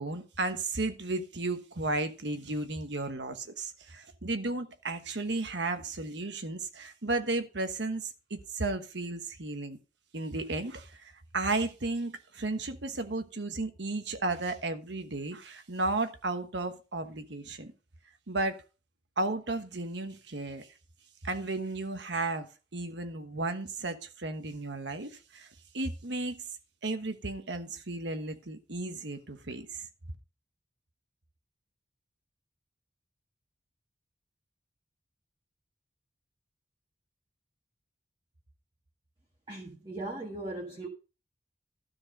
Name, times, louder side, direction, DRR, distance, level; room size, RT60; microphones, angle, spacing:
voice 1, 0.0-9.8 10.1-17.7 18.3-18.6 19.2-20.7 21.2-25.5 25.7-26.4 26.8-29.9, right 2 dB, 70° right, 1.2 m, -34 dB
voice 2, 39.5-40.9, right 2 dB, 25° right, 1.7 m, -38 dB
13.0 x 4.6 x 6.5 m
head